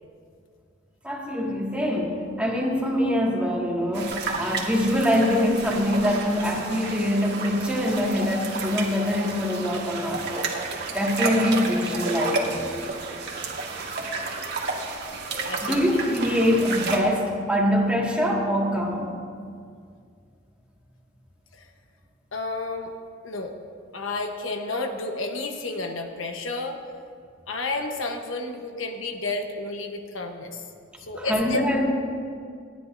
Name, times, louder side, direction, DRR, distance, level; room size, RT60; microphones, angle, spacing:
voice 1, 1.0-10.5 10.9-12.6 15.6-19.2 31.2-31.8, equal, 5° right, -3 dB, 2.0 m, -24 dB
sound 1, 3.9-17.0, right 3 dB, 60° right, 1.7 m, -31 dB
voice 2, 15.4-15.8 21.5-21.7 22.3-22.9 23.2-23.6 23.9-26.8 27.5-30.6 31.0-31.6, left 3 dB, 85° left, 4 dB, 1.1 m, -31 dB
29.0 x 10.5 x 2.7 m, 2.2 s
head